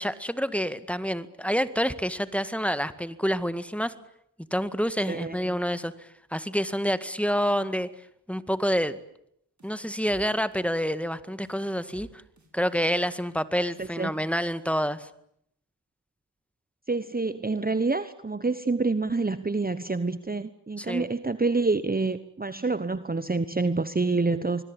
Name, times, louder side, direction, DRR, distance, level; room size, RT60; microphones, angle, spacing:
voice 1, 0.0-3.9 4.5-7.9 8.3-9.0 9.6-12.1 12.5-15.1 20.8-21.1, equal, 5° left, 13 dB, 1.9 m, -28 dB
voice 2, 5.1-5.6 13.8-14.1 16.9-24.6, right 3 dB, 20° right, 13 dB, 1.1 m, -27 dB
sound 1, 9.6-10.2 10.5-10.9 11.4-12.1 12.4-12.7, right 3 dB, 45° right, 6.7 m, -52 dB
25.5 x 22.0 x 10.0 m, 0.72 s
cardioid pair, 70°, 40 cm